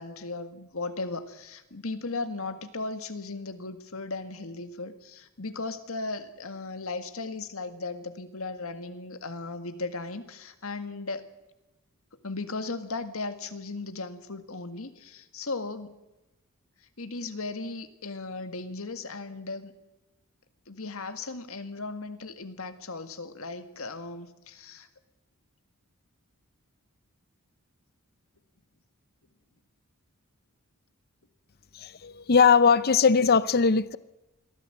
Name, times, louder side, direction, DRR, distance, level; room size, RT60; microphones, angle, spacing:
voice 1, 0.0-11.3 12.2-15.9 17.0-19.7 20.7-24.9, left 3 dB, 65° left, 1.9 m, -36 dB
voice 2, 31.7-34.0, left 5 dB, 45° left, 0.6 m, -20 dB
22.5 x 15.5 x 7.9 m
head